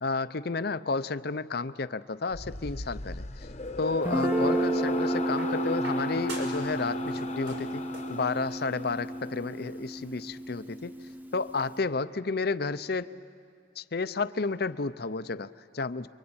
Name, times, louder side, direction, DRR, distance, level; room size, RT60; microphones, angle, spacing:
voice 1, 0.0-3.2 3.8-7.8 8.1-10.9 11.3-13.1 13.8-16.1, left 4 dB, 55° left, 13 dB, 0.7 m, -31 dB
sound 1, 2.3-9.7, left 3 dB, 35° left, 1.0 m, -37 dB
sound 2, 3.6-4.6 5.4-6.7 7.0-8.2 9.3-9.4, right 2 dB, 70° right, 5.6 m, -44 dB
Guitar, 4.0-11.7, right 1 dB, 10° right, 0.8 m, -32 dB
28.0 x 24.0 x 8.8 m, 2.3 s
head